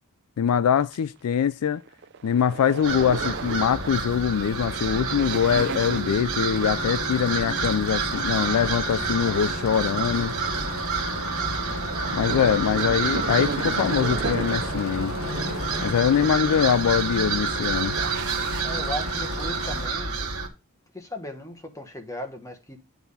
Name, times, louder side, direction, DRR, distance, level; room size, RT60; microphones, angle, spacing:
voice 1, 0.4-1.8 2.2-10.3 12.1-15.1 15.8-18.0, left 8 dB, 80° left, 0.3 m, -23 dB
sound 1, 0.9-1.0 1.4-18.6, right 5 dB, 50° right, 0.5 m, -36 dB
sound 2, 2.8-20.5, right 4 dB, 70° right, 1.9 m, -29 dB
sound 3, 6.5-19.9, left 3 dB, 65° left, 1.0 m, -36 dB
voice 2, 11.3-11.8 18.6-20.3 20.9-22.8, left 1 dB, 15° left, 1.3 m, -37 dB
9.0 x 3.5 x 5.5 m
head